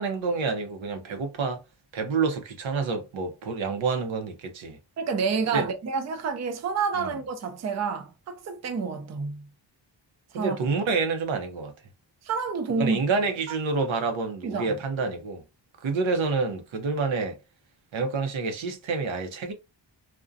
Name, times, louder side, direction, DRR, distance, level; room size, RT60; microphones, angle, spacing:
voice 1, 0.0-1.6 1.9-4.8 5.5-5.7 7.0-7.1 10.3-11.7 12.8-15.4 15.8-17.4 17.9-19.5, right 4 dB, 80° right, 0.7 m, -28 dB
voice 2, 5.0-9.5 10.3-10.6 12.2-13.0 14.4-14.7, right 5 dB, 40° right, 0.4 m, -29 dB
2.5 x 2.1 x 2.5 m
wide cardioid pair, 135°, 46 cm